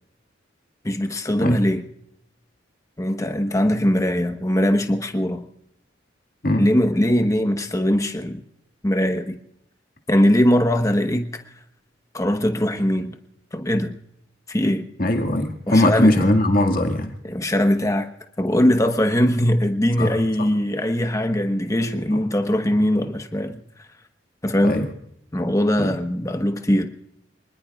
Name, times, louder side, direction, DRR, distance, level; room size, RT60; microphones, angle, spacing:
voice 1, 0.8-1.8 3.0-5.4 6.5-8.4 8.8-9.4 10.1-11.3 12.1-13.1 13.5-13.9 14.5-14.9 15.7-16.3 17.2-18.1 18.4-23.6 24.4-24.8 25.3-26.9, equal, 15° left, 6 dB, 1.1 m, -21 dB
voice 2, 15.0-17.1 20.0-20.1 20.4-20.5 24.6-24.9 25.8-26.0, left 1 dB, 45° left, 3 dB, 2.0 m, -19 dB
26.5 x 20.0 x 2.4 m, 0.77 s
head